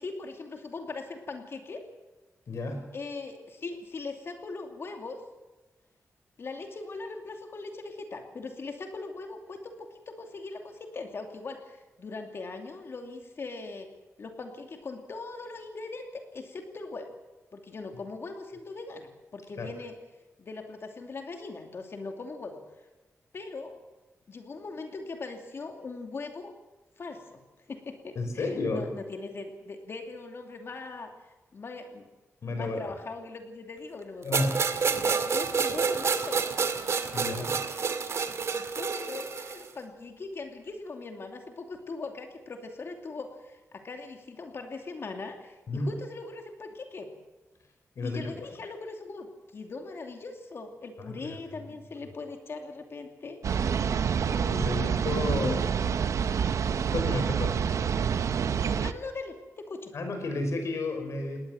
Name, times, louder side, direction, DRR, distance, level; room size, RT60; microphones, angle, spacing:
voice 1, 0.0-1.8 2.9-5.2 6.4-13.9 14.2-17.1 17.5-20.0 20.4-22.6 23.3-23.8 24.3-26.5 27.0-27.4 27.7-31.1 31.5-32.1 32.5-36.4 38.5-47.1 48.0-53.4 54.2-55.1 55.4-55.6 58.0-58.1 58.6-59.9, left 3 dB, 50° left, 4 dB, 2.6 m, -40 dB
voice 2, 2.5-2.9 19.6-19.7 28.2-28.9 32.4-32.9 34.2-34.6 37.1-37.6 45.7-45.9 48.0-48.5 51.0-51.7 54.5-55.6 56.9-57.6 59.9-61.4, left 2 dB, 65° left, 5 dB, 5.6 m, -32 dB
sound 1, 34.3-39.7, right 5 dB, 65° right, 2.0 m, -29 dB
sound 2, 53.4-58.9, right 7 dB, 80° right, 0.9 m, -27 dB
20.5 x 18.5 x 7.7 m, 1.2 s
wide cardioid pair, 145°, 5 cm